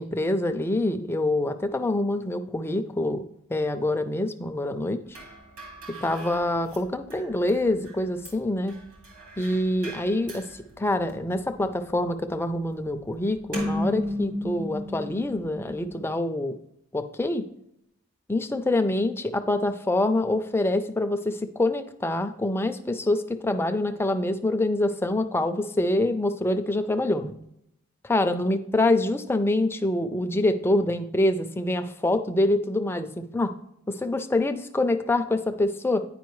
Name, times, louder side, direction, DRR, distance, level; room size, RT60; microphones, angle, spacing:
voice 1, 0.0-3.2 3.5-5.0 6.0-8.8 9.4-10.5 10.8-16.5 16.9-17.4 18.3-27.4 28.0-33.5 33.9-36.1, left 1 dB, 10° left, 8 dB, 0.4 m, -25 dB
sound 1, 5.1-16.0, left 1 dB, 65° right, 2.2 m, -36 dB
9.3 x 5.1 x 3.1 m, 0.77 s
head